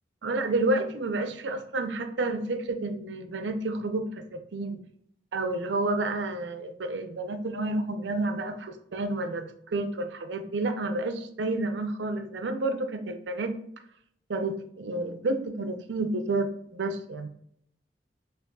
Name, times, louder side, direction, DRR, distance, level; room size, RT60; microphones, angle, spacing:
voice 1, 0.2-4.8 5.3-13.5 14.3-17.3, right 2 dB, 85° right, 8 dB, 0.5 m, -30 dB
5.9 x 3.0 x 2.3 m, 0.70 s
head